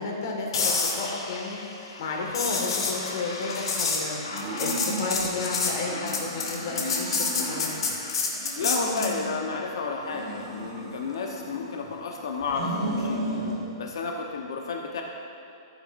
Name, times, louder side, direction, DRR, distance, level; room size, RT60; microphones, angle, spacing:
voice 1, 0.0-1.6 2.0-4.2 4.6-7.7, left 3 dB, 45° left, 0 dB, 1.7 m, -32 dB
sound 1, 0.5-9.2 13.4-13.6, left 4 dB, 90° left, 1.8 m, -29 dB
sound 2, 4.2-5.5 5.9-7.9 8.3-9.6 10.0-11.9 12.4-13.6, right 1 dB, 25° right, 1.6 m, -34 dB
voice 2, 8.6-13.2 13.8-15.0, left 4 dB, 65° left, 1 dB, 1.0 m, -31 dB
14.5 x 9.1 x 2.6 m, 2.7 s
hypercardioid pair, 175°, 3 cm